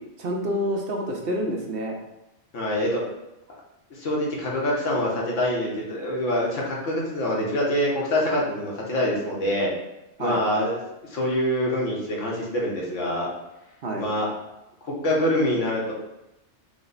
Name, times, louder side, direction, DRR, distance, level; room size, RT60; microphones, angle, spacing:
voice 1, 0.2-2.0 10.2-10.4 13.8-14.1, equal, 55° right, 1 dB, 0.9 m, -28 dB
voice 2, 2.5-3.0 4.0-9.7 10.2-10.8 11.1-13.3 14.0-14.3 14.8-15.9, left 1 dB, 90° left, -3 dB, 1.3 m, -25 dB
5.1 x 2.1 x 3.9 m, 0.92 s
omnidirectional pair, 1.3 m